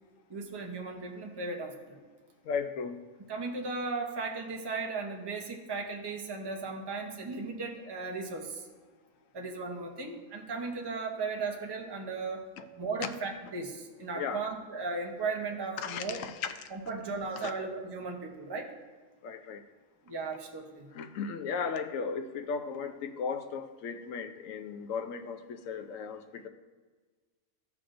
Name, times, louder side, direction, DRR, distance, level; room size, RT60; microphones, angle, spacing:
voice 1, 0.3-2.0 3.3-8.7 9.3-12.4 12.8-16.2 16.7-18.7 20.1-20.9, right 4 dB, 20° right, 1 dB, 0.7 m, -36 dB
voice 2, 2.4-3.0 12.6-12.7 13.0-13.1 14.1-14.4 15.8-16.7 17.4-17.5 19.2-19.6 20.9-26.5, left 6 dB, 65° left, 8 dB, 1.0 m, -36 dB
14.0 x 5.9 x 2.6 m, 1.4 s
omnidirectional pair, 1.5 m